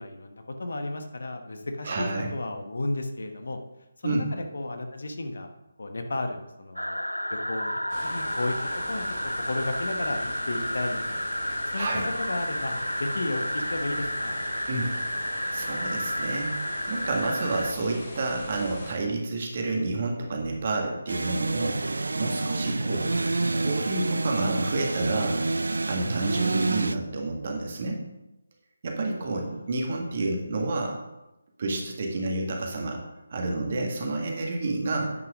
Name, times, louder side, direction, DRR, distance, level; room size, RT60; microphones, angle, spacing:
voice 1, 0.0-3.6 4.0-5.5 5.8-7.0 7.3-7.7 8.0-8.6 8.9-9.0 9.4-11.3 11.7-11.9 12.2-14.4 22.8-23.0 29.2-30.0 30.6-30.8, left 2 dB, 60° left, 6 dB, 1.1 m, -33 dB
voice 2, 1.8-2.3 4.0-4.2 11.8-12.0 14.7-14.9 15.5-16.6 16.9-21.8 22.2-23.2 23.5-25.4 25.9-28.0 28.8-31.0 31.6-33.0 33.3-35.1, right 2 dB, 40° right, 1 dB, 1.8 m, -29 dB
sound 1, 6.8-17.7, equal, 90° left, 0.3 m, -31 dB
sound 2, 7.9-18.9, left 1 dB, 35° left, 3.2 m, -41 dB
sound 3, 21.1-26.9, right 3 dB, 65° right, 0.5 m, -28 dB
9.4 x 5.8 x 5.0 m, 0.95 s
figure-of-eight pair, 150°, 0 cm